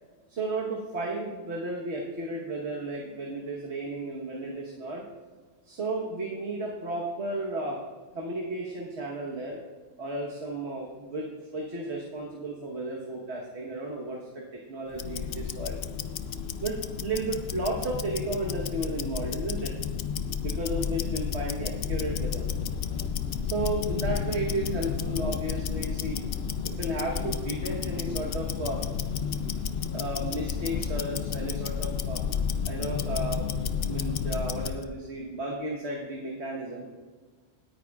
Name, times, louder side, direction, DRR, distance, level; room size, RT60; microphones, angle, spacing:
voice 1, 0.3-5.0 5.6-7.8 8.1-9.6 10.0-11.2 11.5-15.8 16.6-19.7 20.4-22.4 23.4-26.2 26.6-28.8 29.9-32.2 32.6-33.5 33.9-36.9, right 2 dB, 50° right, -2 dB, 1.5 m, -33 dB
Tick-tock, 14.9-34.8, left 7 dB, 65° left, 0.6 m, -31 dB
18.5 x 9.3 x 2.4 m, 1.4 s
omnidirectional pair, 1.5 m